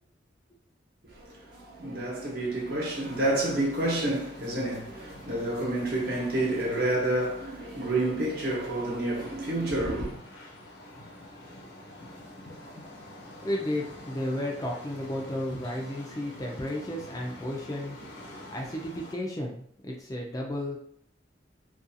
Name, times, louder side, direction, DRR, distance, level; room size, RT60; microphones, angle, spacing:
voice 1, 1.0-10.2, right 1 dB, 55° right, 1.0 m, -29 dB
sound 1, 2.8-19.1, left 1 dB, 90° left, 0.9 m, -47 dB
voice 2, 13.4-18.0 18.5-20.8, left 1 dB, 20° left, 0.4 m, -33 dB
2.5 x 2.3 x 2.6 m
head